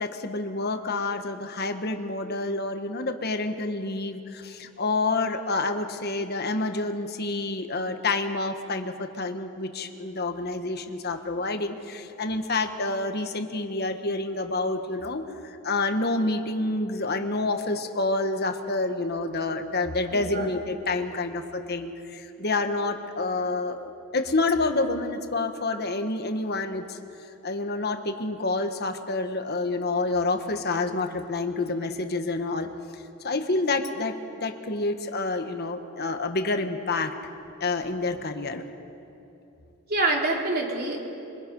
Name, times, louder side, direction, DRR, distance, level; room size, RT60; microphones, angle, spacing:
voice 1, 0.0-27.0 27.4-32.7 33.2-37.1 37.6-38.6, left 2 dB, 45° left, 6 dB, 1.4 m, -28 dB
voice 2, 20.1-20.5 39.9-41.0, right 2 dB, 45° right, 0 dB, 3.0 m, -26 dB
26.5 x 24.0 x 5.4 m, 2.8 s
head